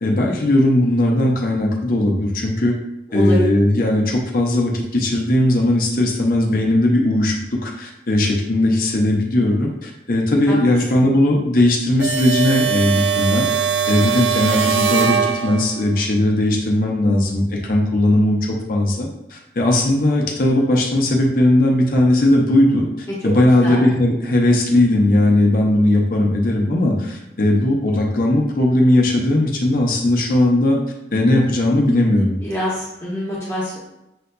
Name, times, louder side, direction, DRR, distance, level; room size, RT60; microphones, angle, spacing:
voice 1, 0.0-2.7 3.1-13.4 13.9-22.9 23.2-30.8 31.1-32.4, left 1 dB, 50° left, -1 dB, 0.7 m, -18 dB
voice 2, 3.1-3.4 10.5-10.8 23.2-23.3 23.6-23.9 32.4-33.8, left 1 dB, 15° left, -7 dB, 1.0 m, -25 dB
sound 1, 12.0-15.9, right 7 dB, 70° right, 0.3 m, -21 dB
6.6 x 2.6 x 2.2 m, 0.89 s
head